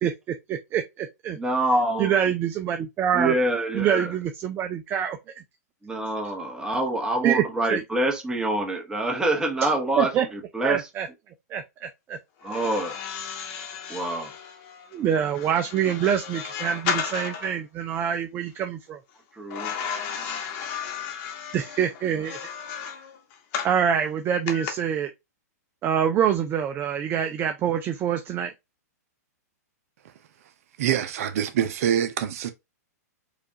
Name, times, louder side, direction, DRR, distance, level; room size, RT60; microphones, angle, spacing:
voice 1, 0.0-1.4 2.0-3.3 3.7-5.2 7.2-7.4 7.7-7.8 9.6-9.7 10.0-10.3 10.6-11.1 11.5-12.2 14.9-19.0 21.5-22.4 23.6-25.1 25.8-28.5, right 9 dB, 25° right, 0.4 m, -25 dB
voice 2, 1.4-2.2 3.1-4.1 5.8-10.9 12.4-13.0 13.9-14.3 19.3-19.7, right 1 dB, 10° right, 1.0 m, -26 dB
sound 1, 12.4-17.6 19.5-23.8 24.5-24.7, left 7 dB, 45° left, 1.1 m, -34 dB
voice 3, 30.8-32.5, right 10 dB, 60° right, 0.6 m, -25 dB
4.9 x 2.4 x 2.7 m
hypercardioid pair, 135°, 9 cm